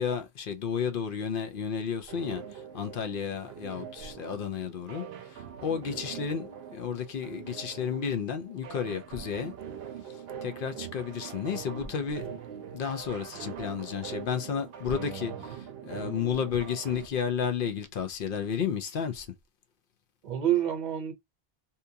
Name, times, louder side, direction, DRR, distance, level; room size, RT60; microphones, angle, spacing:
voice 1, 0.0-9.5 10.4-12.3 12.7-19.3, left 7 dB, 65° left, 0.7 m, -32 dB
sound 1, 2.1-17.1, right 8 dB, 75° right, 0.8 m, -43 dB
voice 2, 14.9-15.4 20.2-21.1, right 11 dB, 45° right, 0.9 m, -29 dB
2.8 x 2.3 x 2.6 m
omnidirectional pair, 1.0 m